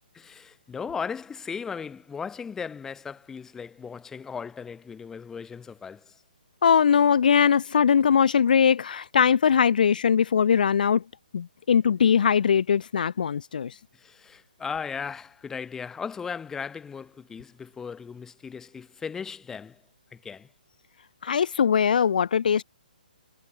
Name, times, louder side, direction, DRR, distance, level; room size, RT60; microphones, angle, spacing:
voice 1, 0.1-6.1 13.9-19.8 20.1-20.5, left 6 dB, 10° left, 3.7 m, -37 dB
voice 2, 6.6-11.0 11.3-13.8 21.2-22.6, left 7 dB, 60° left, 0.4 m, -21 dB
figure-of-eight pair, 140°, 5 cm